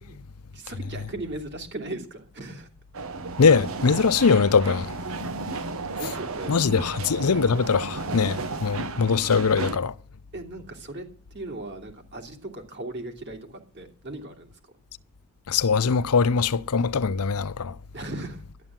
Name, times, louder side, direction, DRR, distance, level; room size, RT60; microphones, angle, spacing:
voice 1, 0.5-2.7 6.0-7.0 10.3-14.5 17.9-18.4, right 2 dB, 50° right, 2.8 m, -38 dB
sound 1, 2.9-9.8, right 3 dB, 70° right, 1.0 m, -33 dB
voice 2, 3.4-4.9 6.5-9.9 15.5-17.7, left 5 dB, 85° left, 0.6 m, -22 dB
12.5 x 10.5 x 7.4 m
head